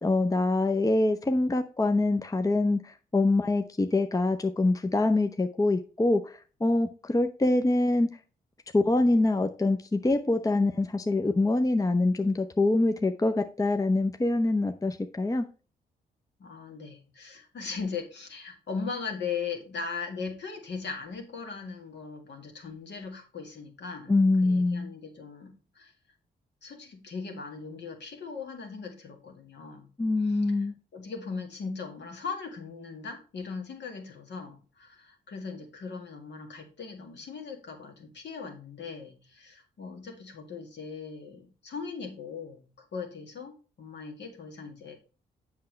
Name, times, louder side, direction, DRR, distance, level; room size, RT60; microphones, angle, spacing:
voice 1, 0.0-8.1 8.7-15.4 24.1-24.9 30.0-30.7, left 2 dB, 15° left, 0.6 m, -25 dB
voice 2, 16.4-24.2 24.4-25.9 26.6-29.9 30.9-45.0, left 5 dB, 60° left, 1.8 m, -39 dB
7.5 x 5.8 x 3.2 m
hypercardioid pair, 40°, 20 cm